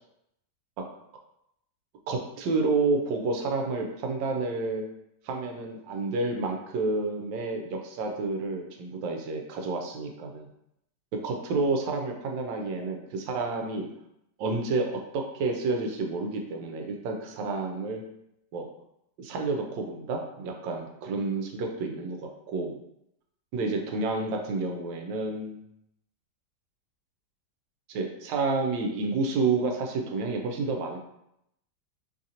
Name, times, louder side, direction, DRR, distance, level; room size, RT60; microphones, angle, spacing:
voice 1, 2.1-4.8 5.2-10.5 11.2-13.9 14.4-18.0 18.5-18.7 19.2-22.8 23.5-25.6 27.9-31.0, right 3 dB, 90° right, 2 dB, 1.3 m, -30 dB
3.2 x 2.5 x 2.7 m, 0.79 s
omnidirectional pair, 1.9 m